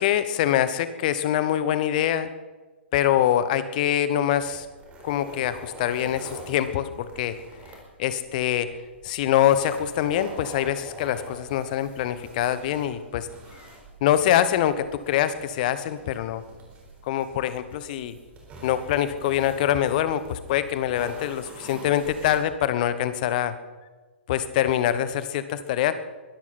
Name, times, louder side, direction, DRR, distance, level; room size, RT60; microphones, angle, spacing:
voice 1, 0.0-2.3 2.9-4.7 5.0-7.3 8.0-8.7 9.0-13.3 14.0-16.4 17.0-18.2 18.6-23.5 24.3-25.9, left 11 dB, 45° left, 13 dB, 1.1 m, -24 dB
sound 1, 4.3-22.4, right 1 dB, 20° right, 4.3 m, -45 dB
22.0 x 13.5 x 4.3 m, 1.3 s
figure-of-eight pair, 115°, 6 cm